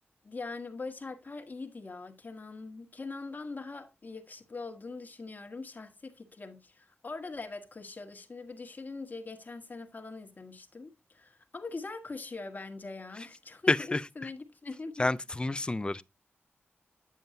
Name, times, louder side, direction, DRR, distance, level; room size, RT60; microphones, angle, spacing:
voice 1, 0.2-15.1, left 3 dB, 40° left, 1.3 m, -42 dB
voice 2, 13.7-14.0 15.0-16.0, left 2 dB, 20° left, 0.4 m, -28 dB
9.3 x 7.1 x 2.7 m
cardioid pair, 75°, 5 cm